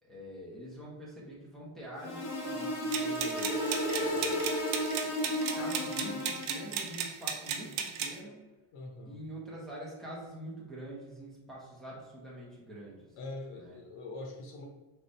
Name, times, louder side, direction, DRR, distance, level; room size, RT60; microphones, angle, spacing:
voice 1, 0.0-3.5 4.0-4.5 5.5-8.4 9.0-13.2 13.5-13.8, right 1 dB, ahead, -7 dB, 1.1 m, -45 dB
sound 1, 2.0-6.8, equal, 35° left, 0.9 m, -33 dB
sound 2, 2.9-8.1, right 7 dB, 85° right, 0.7 m, -35 dB
voice 2, 8.7-9.2 13.2-14.7, left 2 dB, 85° left, 0 dB, 0.9 m, -43 dB
4.9 x 3.6 x 2.7 m, 1.2 s
cardioid pair, 155°, 47 cm